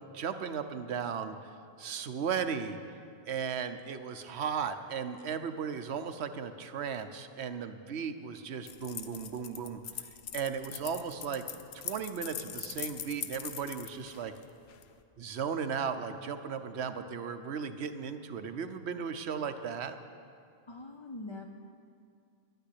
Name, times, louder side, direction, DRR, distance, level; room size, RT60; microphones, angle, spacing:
voice 1, 0.0-1.5 1.8-2.8 3.3-9.8 10.3-11.4 11.7-14.3 15.2-20.0, right 6 dB, 90° right, 9 dB, 1.1 m, -36 dB
sound 1, 8.7-14.9, left 8 dB, 80° left, 1.0 m, -42 dB
voice 2, 20.7-21.5, left 2 dB, 30° left, 2 dB, 0.7 m, -43 dB
12.0 x 9.2 x 10.0 m, 2.4 s
omnidirectional pair, 1.1 m